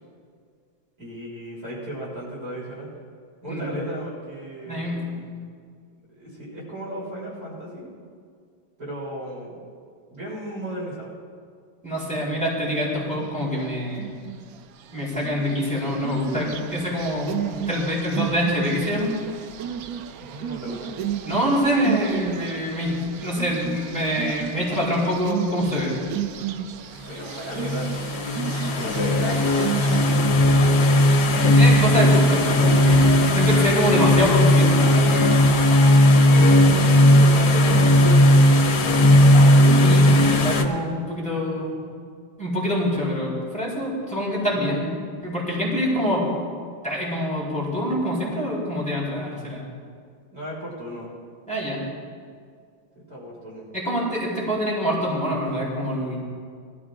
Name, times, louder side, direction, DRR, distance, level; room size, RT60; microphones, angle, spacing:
voice 1, 1.0-2.9 3.4-5.0 6.1-7.9 8.8-9.6 10.1-11.1 20.2-20.9 27.0-30.1 33.0-33.5 36.5-39.1 44.7-44.8 50.3-51.1 53.0-53.7, equal, 45° right, -7 dB, 3.8 m, -35 dB
voice 2, 4.7-5.1 11.8-14.1 14.9-17.3 17.7-19.1 21.2-26.0 31.5-33.0 33.4-35.3 39.6-41.8 42.4-46.3 46.8-49.6 51.5-51.8 53.7-56.2, equal, 5° left, -7 dB, 4.0 m, -25 dB
sound 1, 13.1-13.5 13.9-14.5 15.0-30.2, right 9 dB, 85° right, 0.8 m, -33 dB
sound 2, 27.2-40.6, left 1 dB, 85° left, 1.8 m, -16 dB
20.5 x 13.5 x 2.5 m, 2.2 s
omnidirectional pair, 2.1 m